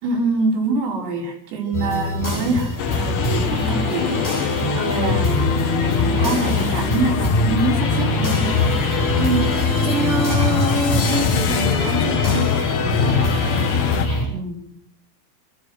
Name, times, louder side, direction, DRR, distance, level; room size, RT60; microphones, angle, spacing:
voice 1, 0.0-4.2 4.9-5.4 5.8-8.8 14.2-14.8, right 3 dB, 85° right, 0 dB, 7.4 m, -25 dB
sound 1, 1.7-14.2, equal, 15° left, 8.0 m, -24 dB
sound 2, 2.8-14.1, left 9 dB, 75° left, 2.5 m, -23 dB
voice 2, 4.7-5.1 9.2-13.2, right 3 dB, 30° right, 0 dB, 3.5 m, -26 dB
28.5 x 14.5 x 6.4 m, 0.71 s
omnidirectional pair, 5.8 m